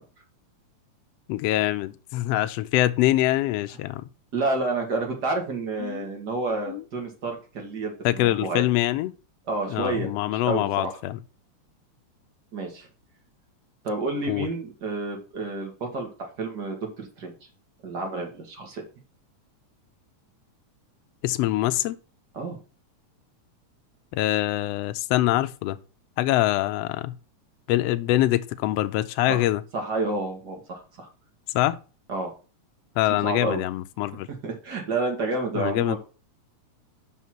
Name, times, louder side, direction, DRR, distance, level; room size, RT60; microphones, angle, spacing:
voice 1, 1.3-4.0 5.8-6.1 6.7-6.8 8.0-9.1 9.7-11.2 14.3-14.5 21.2-21.9 24.1-25.8 26.2-27.2 27.7-29.6 31.5-31.8 33.0-34.3 35.5-36.0, left 15 dB, 85° left, 1.4 m, -24 dB
voice 2, 4.3-8.7 9.5-10.9 12.5-12.9 13.8-17.3 17.8-18.8 22.3-22.6 29.3-29.4 29.7-31.1 32.1-32.3 33.2-33.6 34.4-36.0, right 3 dB, 40° right, 2.1 m, -30 dB
5.7 x 5.5 x 6.0 m
omnidirectional pair, 3.4 m